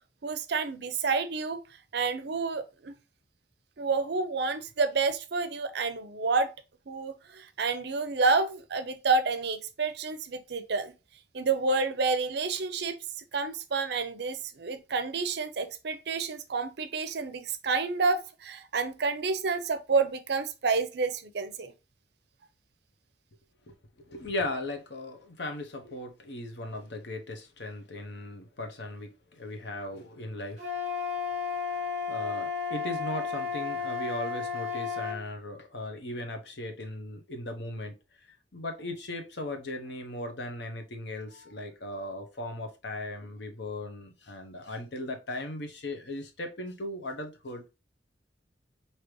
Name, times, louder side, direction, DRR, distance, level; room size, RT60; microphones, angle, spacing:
voice 1, 0.2-1.6 1.9-2.9 3.8-6.5 6.9-10.9 11.3-13.0 13.3-21.7, right 4 dB, 60° right, 0.6 m, -29 dB
voice 2, 24.1-30.7 31.7-37.9 38.2-47.6, left 1 dB, 65° left, 0.9 m, -38 dB
Wind instrument woodwind instrument, 30.6-35.2, left 6 dB, 40° right, 1.0 m, -33 dB
5.0 x 2.9 x 3.0 m
head